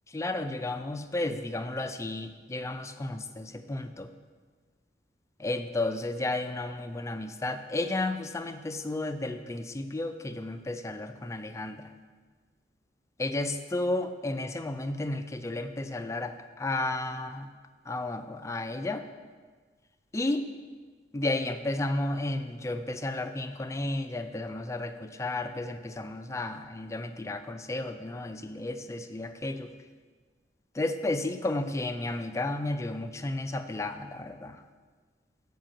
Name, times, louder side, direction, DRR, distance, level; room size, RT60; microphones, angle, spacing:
voice 1, 0.1-4.1 5.4-11.8 13.2-16.3 16.6-17.5 17.9-19.0 20.1-20.4 21.1-29.7 30.8-34.6, left 2 dB, 15° left, 8 dB, 0.4 m, -32 dB
7.4 x 5.2 x 6.4 m, 1.5 s
head